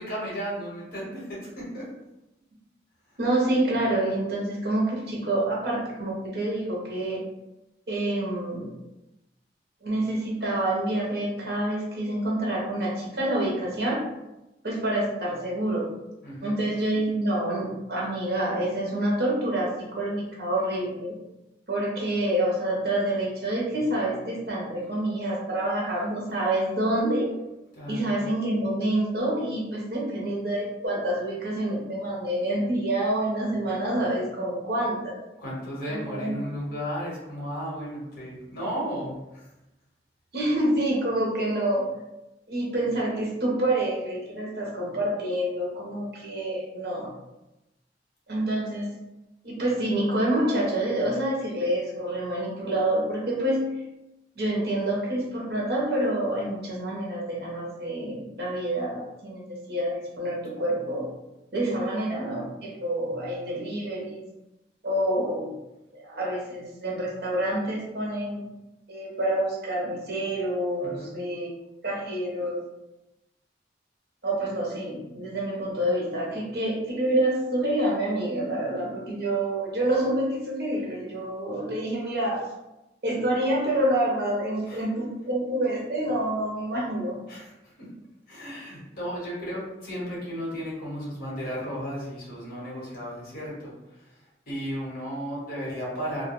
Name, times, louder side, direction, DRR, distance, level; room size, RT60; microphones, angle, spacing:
voice 1, 0.0-1.9 16.2-16.6 27.7-28.2 35.4-39.5 70.8-71.2 84.6-84.8 87.3-87.9 88.3-96.2, equal, 50° left, -6 dB, 1.0 m, -34 dB
voice 2, 3.2-7.2 7.9-8.7 9.8-14.1 14.6-16.0 16.4-21.1 21.7-27.3 27.9-35.2 35.9-36.3 40.3-41.9 42.5-47.1 48.3-48.9 49.4-53.8 54.3-61.1 61.5-64.2 64.8-65.6 65.9-68.4 68.9-71.5 71.8-72.6 74.2-82.5 83.0-87.2, right 1 dB, 60° right, -4 dB, 0.8 m, -27 dB
2.3 x 2.1 x 3.0 m, 0.94 s
head